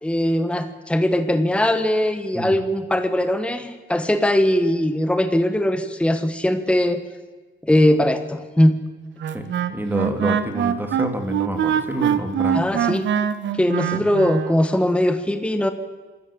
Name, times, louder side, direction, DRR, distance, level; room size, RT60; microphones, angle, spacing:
voice 1, 0.0-7.0 7.6-8.8 12.5-13.1 13.6-15.7, left 1 dB, 5° left, 9 dB, 1.4 m, -20 dB
Wind instrument woodwind instrument, 9.2-14.6, right 9 dB, 65° right, 1.3 m, -23 dB
voice 2, 9.3-12.6 13.9-14.0, right 1 dB, 10° right, 5 dB, 2.8 m, -28 dB
24.0 x 13.5 x 8.6 m, 1.3 s
cardioid pair, 90°, 20 cm